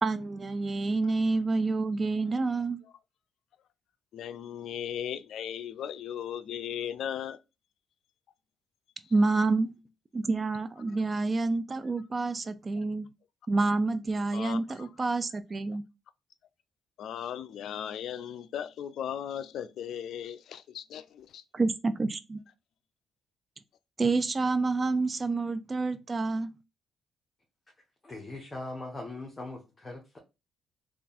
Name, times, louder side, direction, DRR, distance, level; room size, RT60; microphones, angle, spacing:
voice 1, 0.0-2.8 9.1-9.7 10.1-13.1 13.5-15.8 21.5-22.4 24.0-26.5, right 3 dB, 30° right, 0.5 m, -28 dB
voice 2, 4.1-7.4 14.3-14.6 17.0-21.4, left 9 dB, 75° left, 0.3 m, -37 dB
voice 3, 28.0-30.2, left 2 dB, 20° left, 1.1 m, -40 dB
3.4 x 2.4 x 4.1 m
cardioid pair, 90°, 0 cm